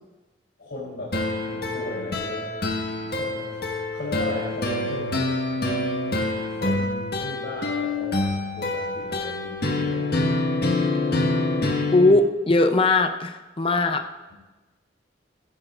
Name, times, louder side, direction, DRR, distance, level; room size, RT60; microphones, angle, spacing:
voice 1, 0.6-2.7 3.0-5.2 6.5-8.3 8.5-10.1 14.3-14.4, left 2 dB, 75° left, -9 dB, 3.6 m, -36 dB
sound 1, 1.1-12.1, left 2 dB, 60° left, 1.5 m, -26 dB
voice 2, 11.9-14.0, left 2 dB, 30° left, 6 dB, 0.6 m, -19 dB
15.5 x 11.0 x 2.5 m, 1.1 s
head